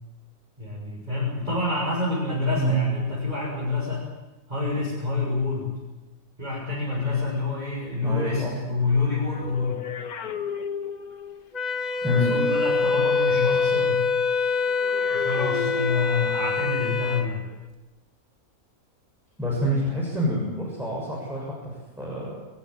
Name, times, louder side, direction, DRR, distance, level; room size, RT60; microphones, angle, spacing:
voice 1, 0.6-4.0 4.5-5.7 6.4-9.8 12.1-14.0 15.1-17.4, left 3 dB, 25° right, -6 dB, 6.8 m, -27 dB
voice 2, 8.0-8.6 12.0-12.4 19.4-22.3, equal, ahead, -5 dB, 7.3 m, -27 dB
sound 1, 8.8-11.5 14.7-16.6 17.5-17.7, left 6 dB, 80° left, 1.9 m, -35 dB
Wind instrument woodwind instrument, 11.5-17.3, left 4 dB, 30° left, 1.4 m, -24 dB
27.0 x 15.0 x 9.9 m, 1.1 s
omnidirectional pair, 1.6 m